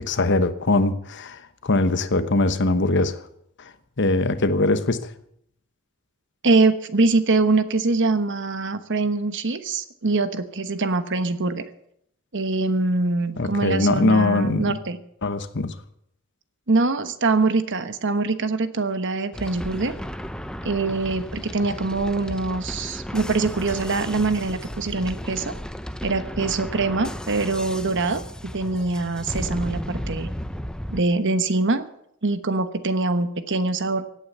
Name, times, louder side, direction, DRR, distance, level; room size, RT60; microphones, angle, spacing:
voice 1, 0.0-3.2 4.0-5.1 13.4-14.8 15.2-15.7, left 2 dB, 55° left, 12 dB, 1.1 m, -22 dB
voice 2, 6.4-11.6 12.3-15.0 16.7-19.9 20.6-25.5 26.0-30.3 30.9-31.9 32.2-34.0, right 3 dB, 55° right, 11 dB, 1.2 m, -23 dB
sound 1, 19.3-31.0, equal, 5° left, 0.7 m, -34 dB
16.5 x 8.8 x 8.1 m, 0.72 s
head